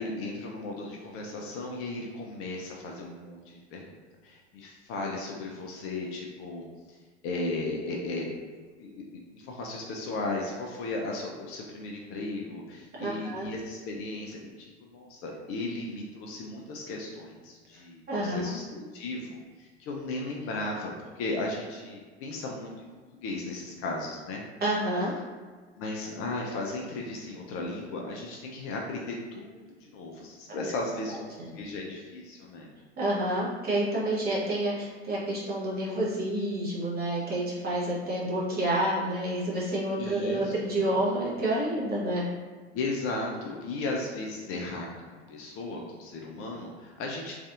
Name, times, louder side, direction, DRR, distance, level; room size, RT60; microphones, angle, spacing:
voice 1, 0.0-7.0 7.2-8.3 8.8-9.0 9.3-22.9 23.2-24.4 25.8-31.3 31.5-32.7 40.0-40.7 42.7-47.3, left 2 dB, 40° left, -1 dB, 0.5 m, -36 dB
voice 2, 13.0-13.5 18.1-18.6 24.6-25.2 31.4-31.5 33.0-42.2, right 1 dB, 25° right, -5 dB, 1.0 m, -29 dB
3.2 x 2.5 x 2.4 m, 1.5 s
figure-of-eight pair, 75°, 35 cm